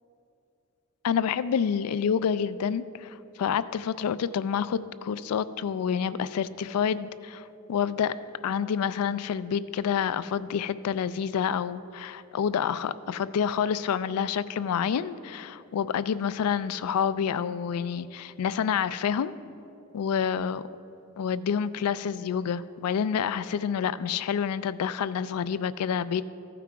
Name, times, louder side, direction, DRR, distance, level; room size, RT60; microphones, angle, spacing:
voice 1, 1.0-7.4 7.7-8.1 8.4-19.3 19.9-20.6 21.2-26.2, left 7 dB, 85° left, 15 dB, 0.3 m, -28 dB
14.0 x 5.9 x 4.7 m, 2.8 s
head